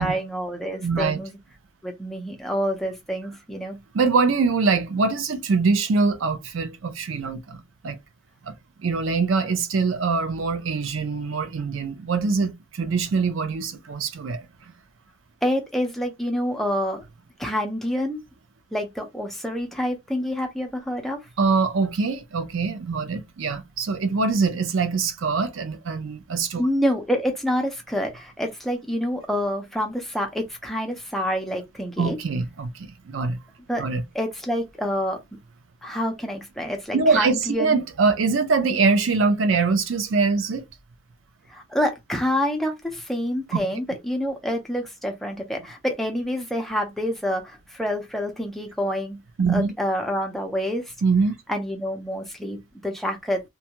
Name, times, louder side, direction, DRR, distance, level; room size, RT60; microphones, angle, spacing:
voice 1, 0.0-1.4 1.8-3.8 15.4-17.0 17.4-18.2 18.7-21.2 26.6-32.2 33.7-33.8 34.1-35.2 35.8-37.8 41.5-49.2 49.5-50.8 51.5-53.4, equal, ahead, 0.6 m, -27 dB
voice 2, 0.8-1.2 3.9-8.0 8.4-8.5 8.8-14.5 21.4-26.6 32.0-33.4 33.8-34.0 36.9-40.7 43.5-43.6 49.4-49.7 51.0-51.3, right 4 dB, 85° right, 0.5 m, -23 dB
2.6 x 2.3 x 2.9 m
head